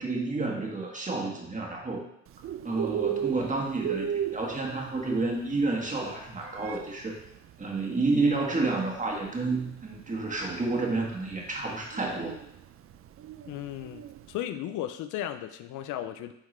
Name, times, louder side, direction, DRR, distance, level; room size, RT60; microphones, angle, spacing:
voice 1, 0.0-2.1 2.6-7.2 7.6-12.4, right 3 dB, 25° right, -1 dB, 1.5 m, -30 dB
Bird, 2.3-14.4, right 9 dB, 50° right, 0.4 m, -37 dB
voice 2, 13.5-14.0 14.3-16.3, left 11 dB, 85° left, 10 dB, 0.5 m, -35 dB
9.0 x 3.7 x 3.2 m, 0.77 s
cardioid pair, 90°, 30 cm